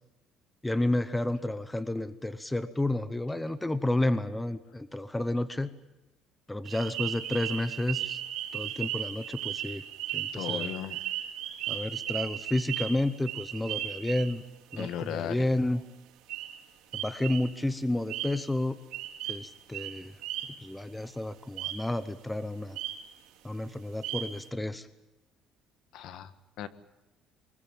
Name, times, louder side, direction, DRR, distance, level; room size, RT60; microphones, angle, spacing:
voice 1, 0.6-5.7 6.5-8.2 8.5-9.8 10.1-10.7 11.7-14.4 14.7-15.8 16.9-18.8 19.3-20.1 20.6-22.8 23.4-24.9, left 1 dB, 5° left, 13 dB, 0.8 m, -31 dB
sound 1, 6.6-14.4 14.7-15.0 16.3-16.6 16.9-17.5 18.1-18.5 18.9-20.7 21.6-21.9 22.8-23.1 24.0-24.5, right 12 dB, 85° right, 4.6 m, -36 dB
voice 2, 10.3-11.0 14.8-15.5 25.9-26.3 26.6-26.7, left 10 dB, 60° left, 12 dB, 1.6 m, -36 dB
24.0 x 21.0 x 8.8 m, 0.99 s
cardioid pair, 180°, 0 cm